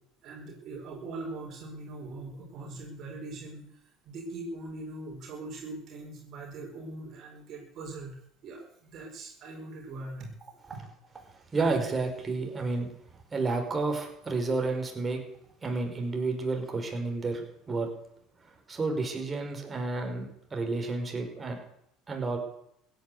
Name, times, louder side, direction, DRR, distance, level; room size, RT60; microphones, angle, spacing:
voice 1, 0.2-3.6 4.0-10.3 10.7-10.8, right 2 dB, 55° right, 0 dB, 4.8 m, -41 dB
voice 2, 11.5-12.9 13.3-15.2 15.6-17.4 17.7-17.9 18.4-21.6 22.1-22.4, right 3 dB, 25° right, 3 dB, 5.2 m, -30 dB
16.0 x 10.0 x 8.2 m, 0.73 s
hypercardioid pair, 80°, 0 cm